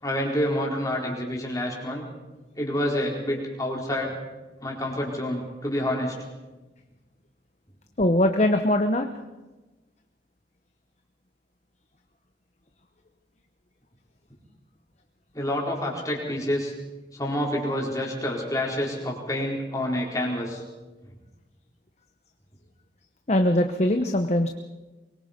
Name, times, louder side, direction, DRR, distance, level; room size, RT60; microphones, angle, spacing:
voice 1, 0.0-2.0 2.6-4.1 4.6-6.1 15.3-16.7 17.1-20.6, left 1 dB, 20° left, -2 dB, 4.4 m, -28 dB
voice 2, 8.0-9.1 23.3-24.5, left 1 dB, 35° left, 6 dB, 0.9 m, -21 dB
23.5 x 22.5 x 5.2 m, 1.2 s
head